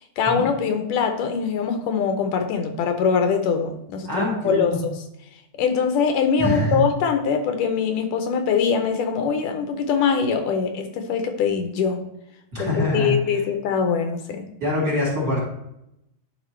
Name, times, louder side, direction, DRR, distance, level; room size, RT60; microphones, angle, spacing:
voice 1, 0.2-4.9 5.6-12.0 12.6-12.7 12.9-14.5, left 6 dB, 75° left, 6 dB, 2.3 m, -23 dB
voice 2, 4.0-4.8 6.4-6.9 12.5-13.5 14.6-15.5, left 1 dB, 30° right, -4 dB, 2.3 m, -24 dB
11.0 x 5.0 x 3.2 m, 0.82 s
omnidirectional pair, 3.9 m